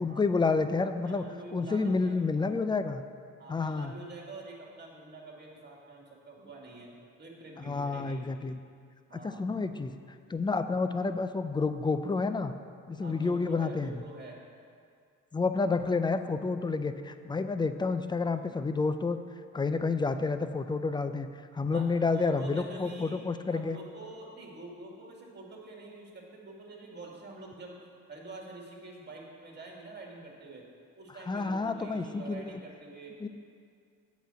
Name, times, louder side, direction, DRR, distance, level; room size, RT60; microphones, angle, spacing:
voice 1, 0.0-1.2 1.5-3.0 3.5-3.9 7.6-8.6 9.2-9.9 10.3-12.5 12.9-14.0 15.3-19.2 19.5-21.3 21.5-23.8 31.3-32.6 33.2-33.3, left 4 dB, 15° left, 10 dB, 0.4 m, -29 dB
voice 2, 1.0-2.2 3.4-8.3 9.1-9.5 13.0-14.4 21.7-21.9 22.1-27.8 28.1-30.7 31.0-33.3, right 2 dB, 35° right, -2 dB, 2.2 m, -47 dB
8.0 x 5.2 x 7.6 m, 2.3 s
cardioid pair, 90°, 30 cm